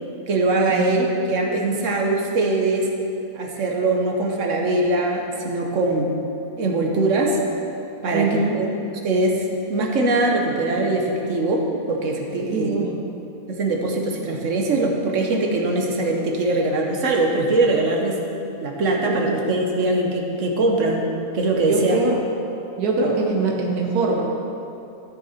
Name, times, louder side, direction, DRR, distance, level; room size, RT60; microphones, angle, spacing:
voice 1, 0.3-2.9 3.3-6.1 6.6-7.4 8.0-8.7 9.0-12.8 13.5-18.2 18.6-21.0 21.3-22.0, right 2 dB, 55° right, 1 dB, 1.4 m, -22 dB
voice 2, 8.1-8.6 12.5-13.0 19.1-19.2 21.6-22.2 22.8-24.3, right 3 dB, 80° right, -1 dB, 1.6 m, -22 dB
13.5 x 6.6 x 4.3 m, 2.8 s
omnidirectional pair, 1.6 m